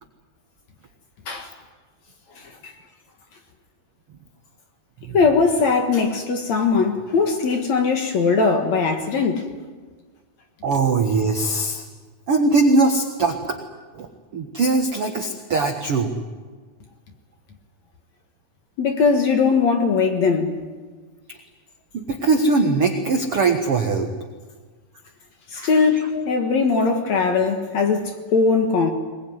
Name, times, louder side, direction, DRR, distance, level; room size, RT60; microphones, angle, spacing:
voice 1, 5.1-9.4 18.8-20.5 25.5-28.9, left 4 dB, 55° left, 2.4 m, -20 dB
voice 2, 10.6-11.8 12.3-13.6 13.9-16.2 21.3-21.4 21.9-24.1 25.5-26.0 26.7-26.8, right 3 dB, 65° right, 1.4 m, -21 dB
21.5 x 21.5 x 9.6 m
omnidirectional pair, 4.6 m